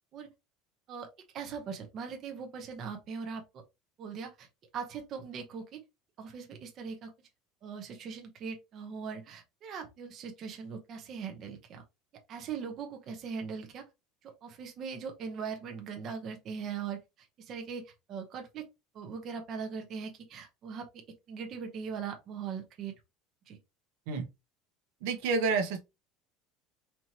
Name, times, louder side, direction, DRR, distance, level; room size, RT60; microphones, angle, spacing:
voice 1, 1.3-3.6 4.0-4.5 4.7-5.8 6.2-7.1 7.6-11.8 12.3-13.8 14.2-18.7 18.9-20.9 21.3-22.9 23.5-23.6, right 6 dB, 35° right, 0.9 m, -40 dB
voice 2, 25.0-25.8, right 4 dB, 70° right, 1.0 m, -29 dB
4.3 x 3.0 x 2.9 m
cardioid pair, 170°, 0 cm